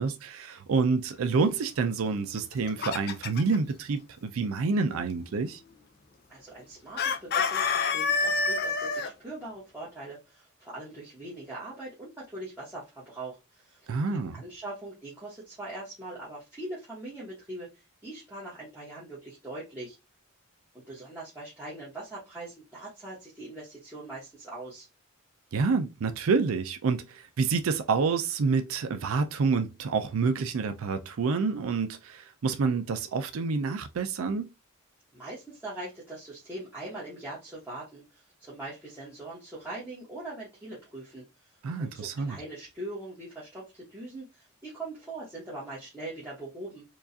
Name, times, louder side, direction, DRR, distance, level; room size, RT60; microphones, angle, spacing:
voice 1, 0.0-5.6 13.9-14.4 25.5-34.5 41.6-42.4, right 4 dB, 65° right, 0.4 m, -28 dB
Chicken rooster, 2.4-3.6 7.0-9.1, left 4 dB, 45° left, 0.5 m, -27 dB
voice 2, 6.3-13.8 14.3-17.7 18.0-20.0 20.7-24.9 35.1-41.2 41.8-46.8, right 2 dB, 10° right, 1.2 m, -41 dB
4.5 x 2.4 x 2.7 m
head